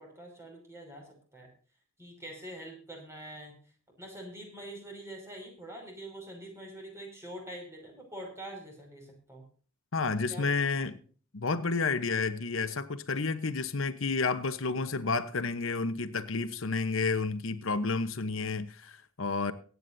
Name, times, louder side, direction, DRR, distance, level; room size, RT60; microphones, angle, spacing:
voice 1, 0.0-1.5 2.0-3.5 4.0-9.4 10.3-10.9, right 1 dB, 15° right, 5.5 m, -45 dB
voice 2, 9.9-11.0 11.3-19.5, left 4 dB, 75° left, 1.0 m, -30 dB
23.0 x 9.4 x 2.7 m
head